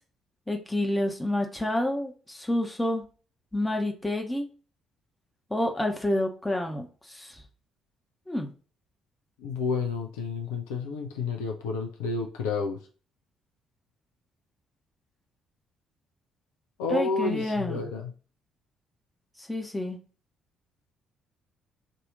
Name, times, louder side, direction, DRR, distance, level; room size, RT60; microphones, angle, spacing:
voice 1, 0.5-3.0 3.5-4.5 5.5-7.4 8.3-8.5 16.9-17.8 19.5-20.0, left 1 dB, 10° left, 2 dB, 1.0 m, -28 dB
voice 2, 9.4-12.8 16.8-18.1, left 4 dB, 70° left, 3 dB, 0.5 m, -30 dB
3.7 x 2.7 x 3.9 m, 0.37 s
figure-of-eight pair, 45°, 0 cm